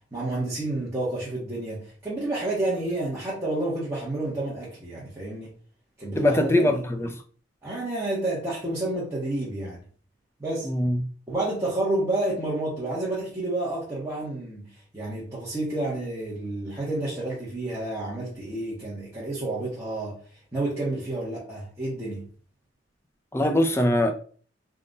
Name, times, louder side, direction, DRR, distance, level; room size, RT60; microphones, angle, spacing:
voice 1, 0.1-5.5 6.0-6.8 7.6-9.8 10.4-10.7 11.3-20.2 20.5-22.3, right 2 dB, 15° right, 1.1 m, -30 dB
voice 2, 6.1-7.2 10.6-11.1 23.3-24.1, left 1 dB, 15° left, 0.4 m, -22 dB
3.7 x 2.5 x 3.9 m
head